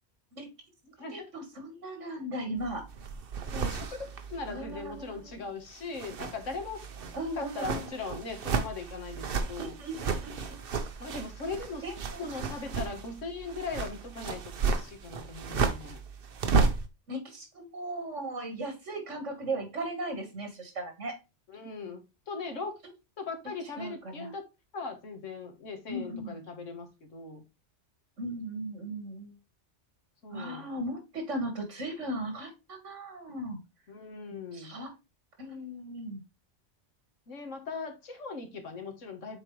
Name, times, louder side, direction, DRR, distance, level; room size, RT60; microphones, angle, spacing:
voice 1, 1.1-2.8 4.5-5.4 7.1-7.9 9.6-10.6 11.8-12.3 17.1-21.1 23.8-24.3 25.9-26.4 28.2-29.4 30.3-33.6 34.5-34.9 35.4-36.2, right 1 dB, 80° right, 5 dB, 2.2 m, -37 dB
sound 1, 2.6-5.4 5.7-16.9, right 4 dB, 55° right, 1.0 m, -33 dB
voice 2, 3.5-6.9 7.4-9.8 11.0-11.8 12.2-16.0 21.5-22.7 23.2-24.5 24.7-27.4 30.2-30.7 33.9-34.7 37.3-39.4, left 4 dB, 90° left, 5 dB, 1.8 m, -39 dB
7.3 x 4.3 x 3.2 m, 0.27 s
omnidirectional pair, 1.2 m